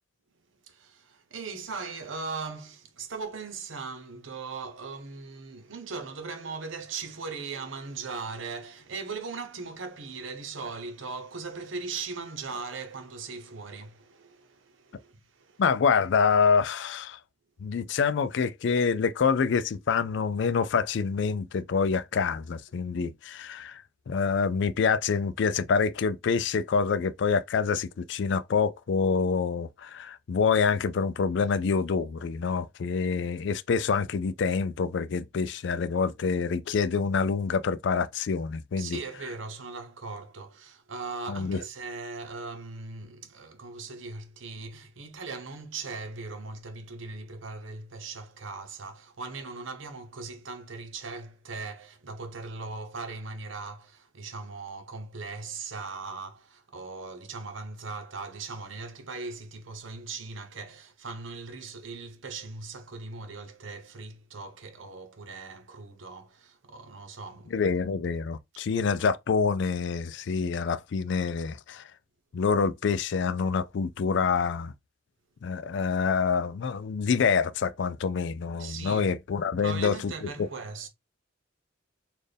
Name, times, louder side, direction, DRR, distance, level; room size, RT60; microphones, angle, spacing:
voice 1, 0.6-15.6 38.8-67.6 78.6-79.1 79.6-80.9, right 4 dB, 80° right, 0.9 m, -39 dB
voice 2, 15.6-17.2 17.6-39.0 41.3-41.6 67.5-71.9 72.3-74.7 75.4-80.3, left 5 dB, 65° left, 0.4 m, -26 dB
4.2 x 2.5 x 3.4 m
head